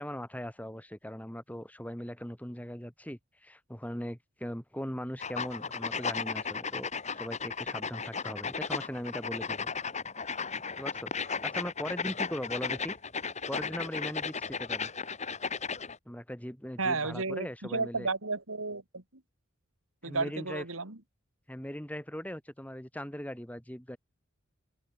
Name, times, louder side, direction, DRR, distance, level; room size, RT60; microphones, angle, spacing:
voice 1, 0.0-9.7 10.8-13.0 13.5-14.9 16.1-18.1 20.0-20.6 21.5-24.0, equal, 5° left, 4.6 m, -39 dB
sound 1, 5.2-16.0, left 5 dB, 35° left, 3.3 m, -35 dB
voice 2, 16.8-19.0 20.0-21.0, right 3 dB, 85° right, 3.3 m, -33 dB
open air
head